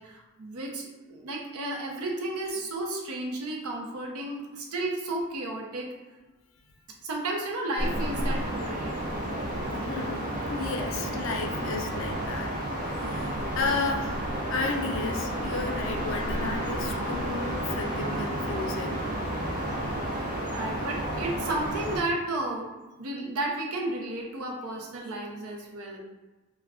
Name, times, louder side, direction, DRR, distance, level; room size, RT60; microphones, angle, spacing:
voice 1, 0.0-5.9 7.0-8.9 20.1-20.2 20.5-22.7 23.0-26.0, right 2 dB, 90° right, 0 dB, 0.6 m, -33 dB
sound 1, 7.8-22.0, right 1 dB, 40° right, 0.5 m, -31 dB
voice 2, 9.7-12.6 13.0-14.2 14.5-19.0, left 4 dB, 60° left, 4 dB, 0.4 m, -33 dB
2.3 x 2.2 x 3.5 m, 1.2 s
head